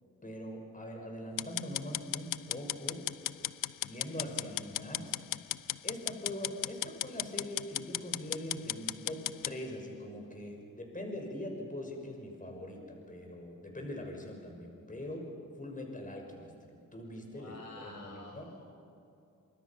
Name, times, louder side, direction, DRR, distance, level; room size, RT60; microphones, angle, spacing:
voice 1, 0.2-3.0 3.8-5.2 5.8-15.3 15.6-18.5, left 1 dB, 25° left, 2 dB, 6.1 m, -42 dB
sound 1, 1.4-9.5, left 13 dB, 85° left, 0.6 m, -36 dB
voice 2, 17.3-18.7, left 2 dB, 55° left, 0 dB, 5.8 m, -50 dB
27.0 x 24.5 x 6.0 m, 2.6 s
cardioid pair, 50°, 32 cm